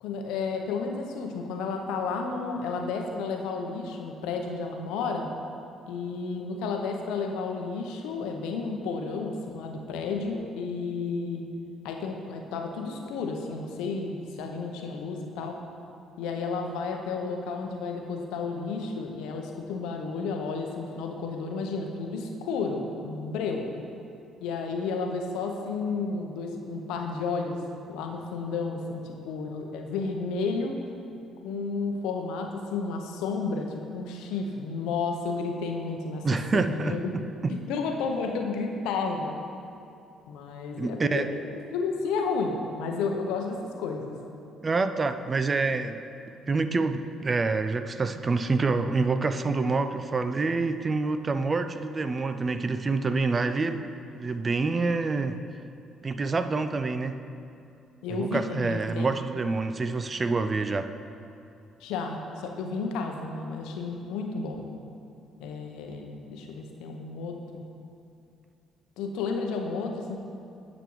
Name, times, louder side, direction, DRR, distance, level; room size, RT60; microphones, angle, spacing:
voice 1, 0.0-5.3 5.9-11.4 11.8-15.6 16.2-23.7 24.4-27.6 27.9-30.7 31.4-36.2 36.5-37.1 37.7-39.3 40.3-41.4 41.7-44.1 58.0-59.1 61.8-64.7 65.4-67.6 69.0-70.2, left 4 dB, 70° left, 3 dB, 0.7 m, -32 dB
voice 2, 36.2-37.0 37.4-37.5 40.8-41.3 44.6-46.0 46.5-53.9 54.1-55.4 56.0-57.2 58.1-60.9, right 3 dB, 35° right, 10 dB, 0.4 m, -27 dB
10.0 x 6.2 x 3.1 m, 2.7 s
hypercardioid pair, 50°, 0 cm